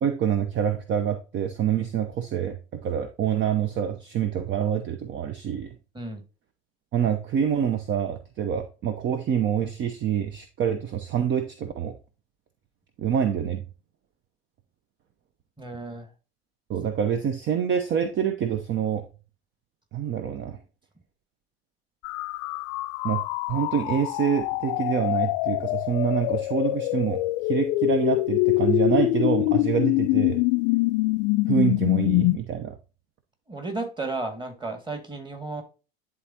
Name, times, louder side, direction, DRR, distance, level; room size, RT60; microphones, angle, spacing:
voice 1, 0.0-5.8 6.9-12.0 13.0-13.6 16.7-19.0 19.9-20.6 23.0-23.2 23.5-30.4 31.5-32.8, right 8 dB, 40° right, 8 dB, 0.8 m, -26 dB
voice 2, 15.6-16.1 33.5-35.6, right 3 dB, 15° right, 5 dB, 2.1 m, -33 dB
sound 1, 22.0-32.4, left 20 dB, 55° left, 0.4 m, -24 dB
11.0 x 3.8 x 2.8 m, 0.32 s
hypercardioid pair, 75°, 30 cm